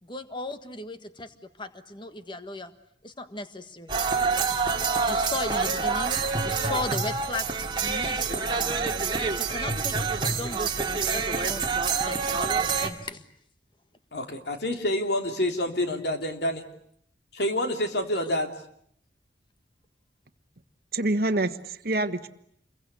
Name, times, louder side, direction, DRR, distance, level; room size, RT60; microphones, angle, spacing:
voice 1, 0.0-2.7 3.0-3.9 5.1-6.2 6.4-7.5 7.8-8.7 9.0-13.2, left 2 dB, 25° left, 9 dB, 1.6 m, -37 dB
sound 1, 3.9-12.9, right 4 dB, 25° right, 2.5 m, -27 dB
voice 2, 14.1-16.6 17.3-18.5, left 1 dB, 65° left, 5 dB, 3.2 m, -27 dB
voice 3, 20.9-22.3, right 2 dB, 55° right, 10 dB, 1.4 m, -26 dB
28.5 x 23.0 x 8.3 m, 0.69 s
head